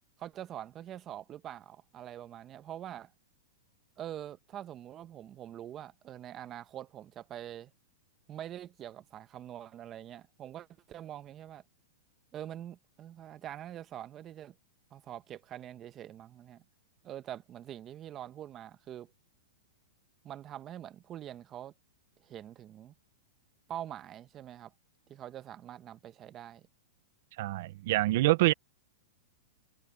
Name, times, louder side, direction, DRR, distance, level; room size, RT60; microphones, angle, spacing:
voice 1, 0.2-3.1 4.0-7.7 8.3-11.6 12.3-14.5 14.9-16.6 17.0-19.1 20.2-21.7 22.2-22.9 23.7-24.7 25.1-26.7, right 11 dB, 30° right, 1.1 m, -44 dB
voice 2, 27.4-28.5, right 18 dB, 60° right, 0.9 m, -26 dB
hypercardioid pair, 130°, 0 cm